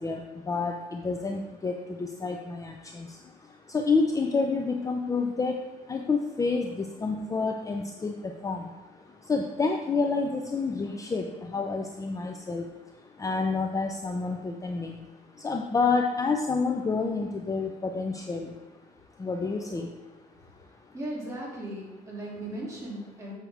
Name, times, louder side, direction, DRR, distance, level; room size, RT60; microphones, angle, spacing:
voice 1, 0.5-3.1 3.7-5.6 5.9-8.6 9.3-11.3 11.5-12.6 13.2-15.0 15.4-18.5 19.2-19.9, left 4 dB, 20° left, 3 dB, 0.5 m, -28 dB
voice 2, 20.9-23.4, right 1 dB, 20° right, -5 dB, 2.6 m, -37 dB
7.8 x 6.0 x 3.4 m, 1.1 s
cardioid pair, 110°, 17 cm